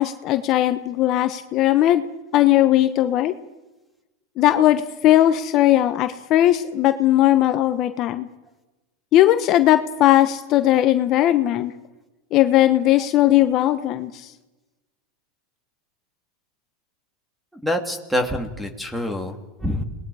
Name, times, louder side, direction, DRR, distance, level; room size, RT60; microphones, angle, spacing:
voice 1, 0.0-2.1 2.3-3.3 4.4-8.3 9.1-11.7 12.3-14.3, left 13 dB, 45° left, 8 dB, 1.1 m, -18 dB
voice 2, 17.6-19.8, left 1 dB, ahead, 6 dB, 2.8 m, -26 dB
29.5 x 20.0 x 5.0 m, 1.1 s
supercardioid pair, 130°, 0 cm